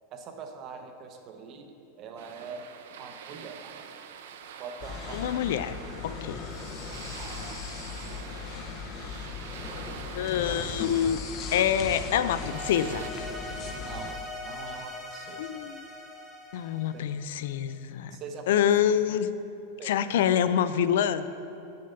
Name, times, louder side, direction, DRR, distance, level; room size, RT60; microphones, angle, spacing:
voice 1, 0.1-1.7 2.0-2.7 3.0-3.9 4.6-5.5 13.9-14.2 14.4-15.6 16.9-17.1 18.1-18.6 19.8-19.9, right 5 dB, 25° right, 5 dB, 0.7 m, -43 dB
sound 1, 2.2-13.1, right 7 dB, 65° right, 0.6 m, -45 dB
sound 2, 4.8-14.1, left 5 dB, 30° left, 0.6 m, -38 dB
voice 2, 5.1-5.8 6.0-6.4 10.1-11.2 11.5-13.0 15.4-15.8 16.5-18.2 18.5-19.3 19.8-21.3, left 9 dB, 65° left, 13 dB, 0.4 m, -26 dB
sound 3, 12.2-17.6, left 1 dB, ahead, 1.2 m, -41 dB
6.8 x 6.5 x 6.8 m, 2.7 s
supercardioid pair, 175°, 0 cm